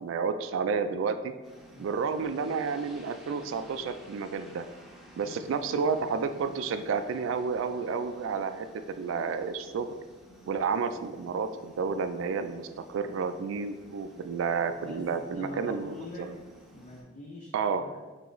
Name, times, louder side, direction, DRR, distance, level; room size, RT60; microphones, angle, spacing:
voice 1, 0.0-1.3 1.8-4.6 5.2-9.9 10.5-16.3 17.5-17.8, right 5 dB, 80° right, 11 dB, 0.3 m, -31 dB
sound 1, 1.4-17.0, right 1 dB, ahead, 0.7 m, -54 dB
voice 2, 14.8-16.3 16.7-18.0, left 1 dB, 40° left, -2 dB, 0.4 m, -44 dB
3.3 x 3.0 x 3.8 m, 1.2 s
head